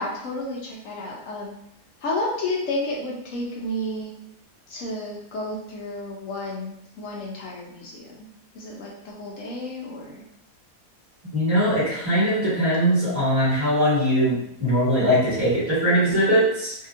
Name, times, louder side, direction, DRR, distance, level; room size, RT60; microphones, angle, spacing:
voice 1, 0.0-1.6 2.0-4.1 4.7-8.3 8.5-10.2, left 1 dB, 65° left, -2 dB, 0.9 m, -31 dB
voice 2, 11.3-16.7, equal, 20° right, -10 dB, 1.5 m, -21 dB
2.8 x 2.7 x 2.4 m, 0.76 s
omnidirectional pair, 1.7 m